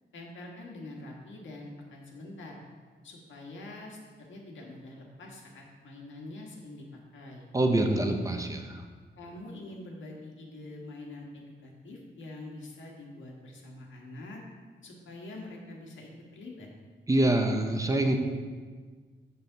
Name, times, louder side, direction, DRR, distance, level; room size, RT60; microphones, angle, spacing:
voice 1, 0.1-2.6 3.0-7.5 9.2-14.4 14.8-16.7, left 2 dB, 80° left, -1 dB, 1.6 m, -45 dB
voice 2, 7.5-8.8 17.1-18.2, right 1 dB, 15° right, 4 dB, 0.6 m, -25 dB
7.5 x 6.9 x 3.9 m, 1.5 s
wide cardioid pair, 165°, 19 cm